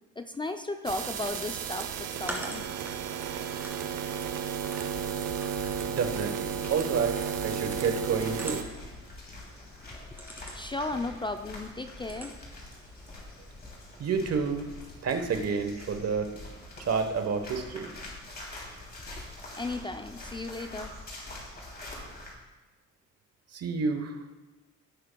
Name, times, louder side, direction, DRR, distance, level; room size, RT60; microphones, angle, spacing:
voice 1, 0.2-2.7 9.9-12.3 19.5-20.9, left 2 dB, 15° left, 7 dB, 0.4 m, -35 dB
sound 1, 0.9-8.6, right 8 dB, 80° right, 0.8 m, -33 dB
sound 2, 1.2-13.7, right 1 dB, 5° right, 1.9 m, -47 dB
sound 3, 4.8-22.3, left 2 dB, 35° left, 2.9 m, -45 dB
voice 2, 5.9-8.6 14.0-14.7 15.0-16.3 16.8-17.9 23.5-24.2, right 5 dB, 55° right, 6 dB, 1.1 m, -29 dB
16.0 x 6.2 x 2.2 m, 1.2 s
cardioid pair, 90°, 30 cm